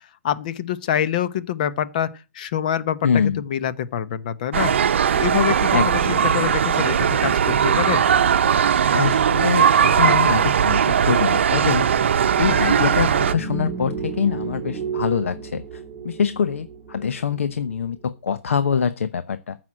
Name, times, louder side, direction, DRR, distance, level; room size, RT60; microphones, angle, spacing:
voice 1, 0.2-4.7 5.1-8.0, left 10 dB, 35° left, 1.0 m, -25 dB
voice 2, 3.0-3.4 5.7-6.3 8.9-11.9 12.4-19.6, left 7 dB, 65° left, 0.9 m, -24 dB
sound 1, 4.5-13.3, right 8 dB, 55° right, 0.8 m, -19 dB
sound 2, 9.8-18.0, right 6 dB, 25° right, 2.0 m, -33 dB
14.0 x 6.2 x 7.5 m
hypercardioid pair, 160°, 7 cm